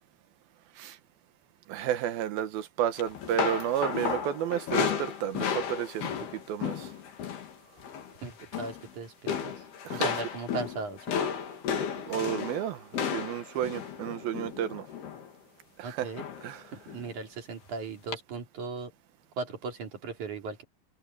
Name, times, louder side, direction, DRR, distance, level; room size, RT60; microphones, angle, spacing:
voice 1, 1.7-6.9 9.8-10.1 12.1-14.9 15.8-16.1 16.4-16.7, right 10 dB, 75° right, 3.0 m, -32 dB
sound 1, 3.0-7.5 7.8-8.1 8.4-8.9 9.3-15.3 16.2-16.5 16.9-17.1 18.1-18.2, left 7 dB, 85° left, 4.7 m, -33 dB
voice 2, 8.2-9.5 9.9-11.2 15.8-16.2 16.9-18.9 19.4-20.6, right 4 dB, 55° right, 4.5 m, -37 dB
omnidirectional pair, 4.4 m